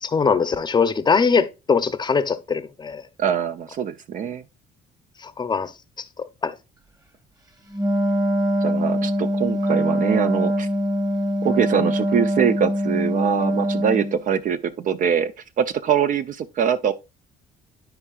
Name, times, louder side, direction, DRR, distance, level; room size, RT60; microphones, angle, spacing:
voice 1, 0.0-3.0 5.2-5.7 6.4-6.5, left 5 dB, 25° left, 0.7 m, -21 dB
voice 2, 3.2-4.4 8.6-10.7 11.4-16.9, right 8 dB, 50° right, 0.6 m, -23 dB
Wind instrument woodwind instrument, 7.7-14.2, equal, 20° right, 1.3 m, -23 dB
13.0 x 4.7 x 2.4 m
cardioid pair, 110°, 17 cm